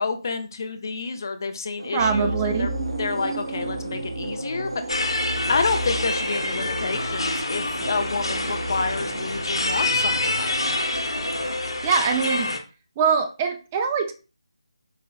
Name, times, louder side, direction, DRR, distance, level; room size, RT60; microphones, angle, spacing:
voice 1, 0.0-2.7 3.0-5.2 5.5-10.8, left 4 dB, 40° left, 8 dB, 0.5 m, -29 dB
sound 1, 1.8-11.6, right 1 dB, 75° right, 0.7 m, -37 dB
voice 2, 1.9-2.8 11.8-12.5 13.0-14.1, right 6 dB, 15° right, 5 dB, 0.3 m, -23 dB
sound 2, 2.0-11.9, right 2 dB, 40° right, 0.8 m, -34 dB
sound 3, 4.9-12.6, left 2 dB, 65° left, 0.8 m, -27 dB
4.8 x 2.9 x 2.3 m, 0.33 s
figure-of-eight pair, 155°, 3 cm